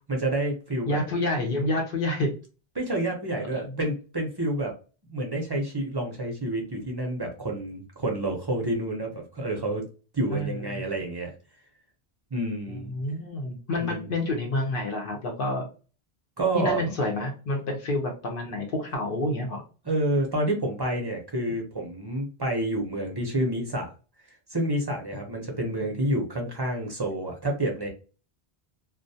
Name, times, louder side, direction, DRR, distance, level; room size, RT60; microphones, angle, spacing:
voice 1, 0.1-1.0 2.8-4.7 5.1-9.8 10.1-11.3 12.3-12.9 13.8-14.1 16.4-16.8 19.8-23.9 24.5-27.9, right 1 dB, 35° right, 1 dB, 0.4 m, -28 dB
voice 2, 0.9-2.3 3.5-3.7 10.3-10.8 12.7-15.7 16.5-19.6 25.7-25.8, left 1 dB, 65° left, 2 dB, 0.7 m, -29 dB
2.2 x 2.1 x 2.6 m, 0.35 s
omnidirectional pair, 1.1 m